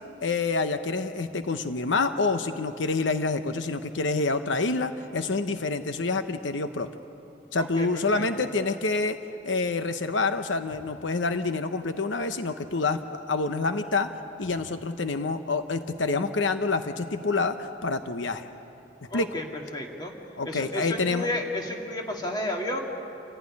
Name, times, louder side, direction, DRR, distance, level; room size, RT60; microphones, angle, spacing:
voice 1, 0.2-6.9 7.5-9.2 9.4-14.1 14.4-18.5 19.1-19.4 20.4-21.3, left 3 dB, 85° left, 9 dB, 0.9 m, -27 dB
voice 2, 7.6-8.5 19.1-20.1 20.4-22.8, left 1 dB, 25° left, 0 dB, 2.4 m, -32 dB
27.5 x 15.5 x 9.9 m, 3.0 s
head